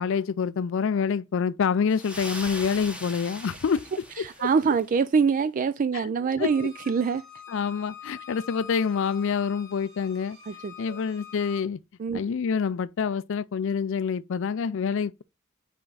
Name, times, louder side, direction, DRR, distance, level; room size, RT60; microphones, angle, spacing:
voice 1, 0.0-3.9 4.2-4.5 5.9-6.0 6.4-6.5 7.5-10.4 10.8-11.8 12.1-15.2, left 6 dB, 65° left, 0.4 m, -27 dB
sound 1, 1.9-4.9, equal, 5° right, 1.2 m, -40 dB
voice 2, 4.2-7.2 10.5-11.0 12.0-12.2, right 5 dB, 40° right, 0.3 m, -25 dB
Bowed string instrument, 6.4-11.6, left 8 dB, 75° right, 3.0 m, -45 dB
5.6 x 5.2 x 3.9 m
head